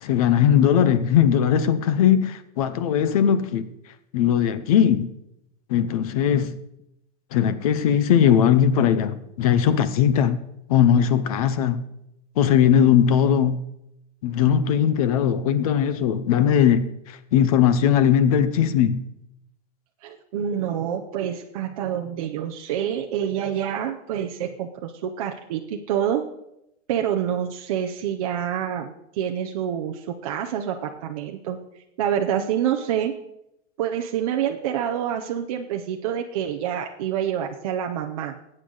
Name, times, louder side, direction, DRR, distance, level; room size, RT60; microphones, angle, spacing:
voice 1, 0.0-3.7 4.1-5.1 5.7-6.6 7.3-10.4 10.7-11.8 12.4-13.6 14.2-19.0, left 9 dB, 30° left, 0.6 m, -19 dB
voice 2, 20.0-26.2 26.9-31.6 32.0-33.1 33.8-38.3, right 9 dB, 30° right, 0.6 m, -27 dB
19.0 x 8.8 x 3.8 m
supercardioid pair, 175°, 36 cm